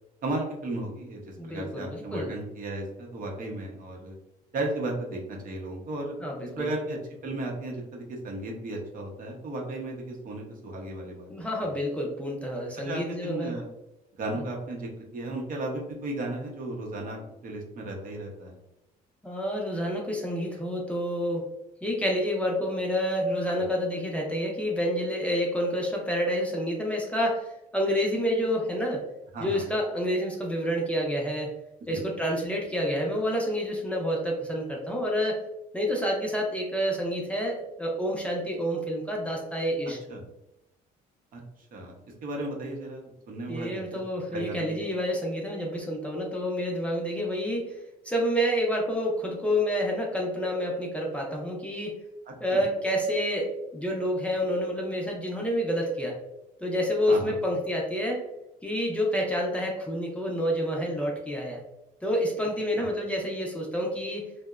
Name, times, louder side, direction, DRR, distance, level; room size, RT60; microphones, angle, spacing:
voice 1, 0.2-4.1 4.5-6.1 6.6-7.0 7.2-11.3 11.6-11.8 12.8-13.7 14.1-18.6 23.6-23.7 29.3-29.7 31.9-32.0 40.1-40.2 41.3-41.4 41.7-41.9 42.2-43.9 44.3-44.8 52.3-52.6 57.1-57.4 62.8-62.9, right 2 dB, 55° right, 0 dB, 0.7 m, -35 dB
voice 2, 1.4-2.3 6.2-6.7 11.3-13.5 19.2-21.4 21.8-29.0 29.4-31.5 31.9-35.4 35.7-40.0 43.5-47.8 48.0-52.0 52.4-56.2 56.6-58.2 58.6-61.6 62.0-64.3, equal, 5° left, -2 dB, 0.5 m, -28 dB
2.8 x 2.1 x 2.3 m, 0.90 s
cardioid pair, 110°, 17 cm